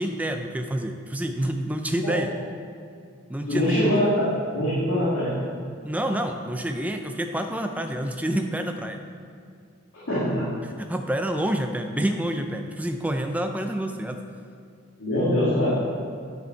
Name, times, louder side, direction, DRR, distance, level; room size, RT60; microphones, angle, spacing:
voice 1, 0.0-2.3 3.3-3.8 5.8-9.0 10.6-14.2, right 1 dB, 5° right, 5 dB, 0.4 m, -28 dB
voice 2, 3.5-5.3 10.1-10.5 15.0-15.7, equal, 65° left, -10 dB, 2.0 m, -23 dB
9.8 x 5.4 x 4.5 m, 2.2 s
head